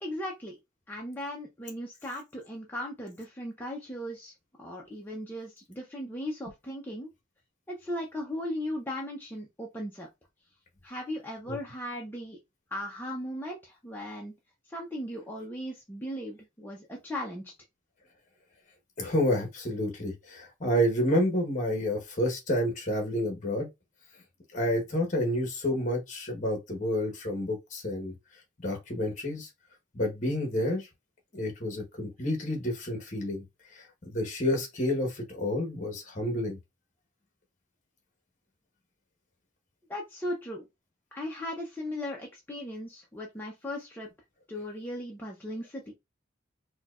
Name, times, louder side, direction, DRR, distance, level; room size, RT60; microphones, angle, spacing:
voice 1, 0.0-0.6 0.9-4.3 4.6-7.1 7.7-10.1 10.8-12.4 12.7-14.3 14.7-17.5 39.9-40.7 41.1-44.1 44.5-45.9, left 1 dB, 10° left, 0.5 m, -37 dB
voice 2, 19.0-23.7 24.5-28.1 28.6-29.5 29.9-30.9 31.3-33.4 33.7-36.6, left 1 dB, 40° left, 1.0 m, -29 dB
4.3 x 2.2 x 2.4 m
head